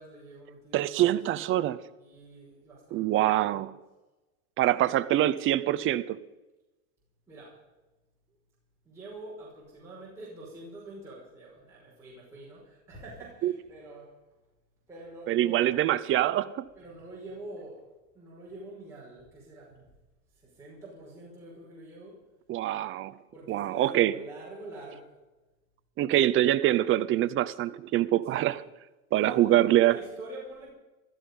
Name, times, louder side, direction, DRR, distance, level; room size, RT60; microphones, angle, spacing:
voice 1, 0.0-1.0 2.0-3.6 4.8-5.1 7.3-7.6 8.8-14.2 14.9-15.9 16.7-17.9 18.1-19.9 20.3-22.3 23.3-25.1 28.3-28.6 29.1-30.7, right 2 dB, 5° right, -7 dB, 5.6 m, -45 dB
voice 2, 0.7-1.8 2.9-3.7 4.6-6.2 13.4-13.5 15.3-16.6 22.5-23.2 23.5-24.1 26.0-28.6 29.1-29.9, right 13 dB, 30° right, 15 dB, 0.6 m, -24 dB
16.0 x 13.0 x 5.5 m, 1.1 s
supercardioid pair, 135°, 45 cm